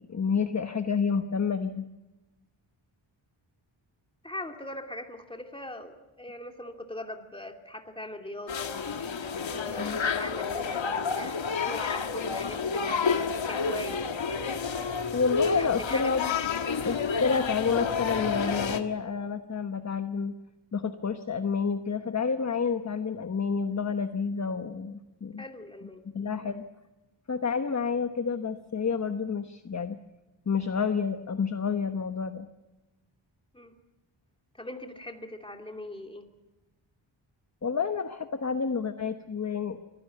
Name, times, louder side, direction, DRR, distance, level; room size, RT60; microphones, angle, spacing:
voice 1, 0.0-1.9 9.8-10.0 15.1-16.2 16.8-20.3 20.7-25.4 26.1-26.7 27.3-30.0 30.5-32.5 37.6-39.8, left 5 dB, 35° left, 8 dB, 1.1 m, -29 dB
voice 2, 4.2-8.7 9.5-13.0 13.5-14.4 15.4-16.3 25.4-26.0 26.4-26.5 33.5-33.7 34.5-36.3, left 1 dB, 10° left, 3 dB, 2.8 m, -41 dB
sound 1, 8.5-18.8, left 5 dB, 70° left, 1.8 m, -30 dB
24.5 x 16.5 x 9.4 m, 1.1 s
wide cardioid pair, 100°, 47 cm